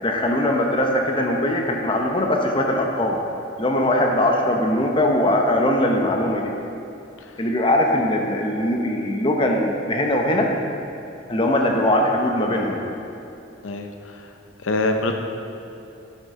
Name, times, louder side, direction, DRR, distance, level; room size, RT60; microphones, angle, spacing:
voice 1, 0.0-3.2 3.6-6.5 7.4-10.5 11.3-12.8, left 1 dB, 25° left, 1 dB, 0.7 m, -21 dB
voice 2, 13.6-14.3 14.6-15.1, left 2 dB, 80° left, 5 dB, 0.7 m, -25 dB
11.0 x 6.6 x 3.7 m, 2.8 s
head